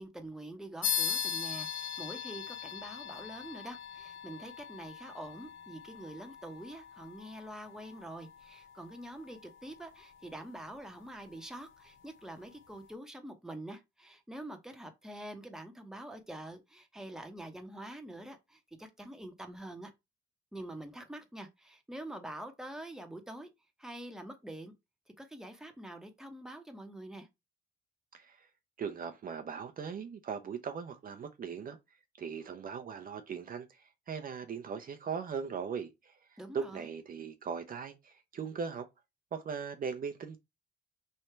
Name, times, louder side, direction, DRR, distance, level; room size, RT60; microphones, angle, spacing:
voice 1, 0.0-19.9 20.5-23.5 23.8-24.7 25.2-27.3 36.4-36.9, right 1 dB, 5° right, 0.9 m, -46 dB
sound 1, 0.8-10.8, left 8 dB, 80° left, 0.8 m, -40 dB
voice 2, 28.1-28.5 28.8-31.8 32.2-38.9 39.3-40.4, right 6 dB, 45° right, 0.7 m, -39 dB
3.3 x 2.7 x 4.4 m
cardioid pair, 90°, 20 cm